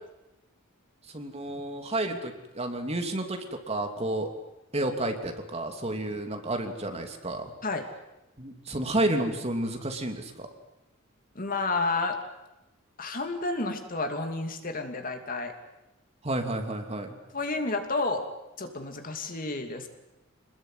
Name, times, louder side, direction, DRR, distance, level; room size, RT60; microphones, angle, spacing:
voice 1, 1.1-4.3 4.7-7.5 8.4-10.5 16.2-17.2, right 1 dB, 30° right, 5 dB, 2.9 m, -31 dB
voice 2, 11.3-12.2 13.0-15.5 17.3-18.3 18.6-19.9, left 3 dB, 45° left, 5 dB, 2.9 m, -30 dB
27.5 x 20.5 x 9.4 m, 0.94 s
head